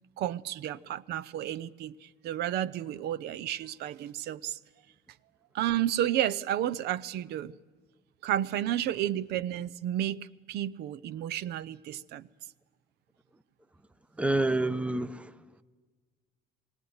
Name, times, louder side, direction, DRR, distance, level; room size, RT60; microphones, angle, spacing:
voice 1, 0.2-4.6 5.5-7.5 8.2-12.3, right 12 dB, 75° right, 0.6 m, -32 dB
voice 2, 14.2-15.3, right 2 dB, 5° right, 0.7 m, -28 dB
19.5 x 17.5 x 9.5 m
cardioid pair, 110°, 17 cm